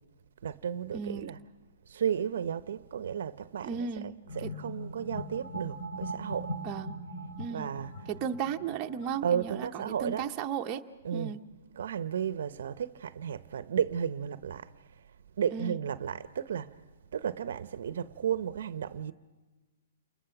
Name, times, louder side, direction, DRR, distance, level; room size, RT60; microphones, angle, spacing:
voice 1, 0.4-1.4 1.9-3.9 4.4-6.5 7.5-7.9 9.2-10.3 11.0-11.3 11.8-14.7 15.4-16.7 17.1-19.1, right 8 dB, 70° right, 0.7 m, -33 dB
voice 2, 0.9-1.3 3.6-4.1 4.4-4.5 6.6-7.0 7.4-7.7 8.1-10.8 11.1-11.4 15.5-15.8, right 7 dB, 25° right, 0.9 m, -35 dB
sound 1, 4.3-9.6, right 1 dB, 35° left, 3.5 m, -40 dB
29.0 x 21.0 x 5.9 m
hypercardioid pair, 150°, 0 cm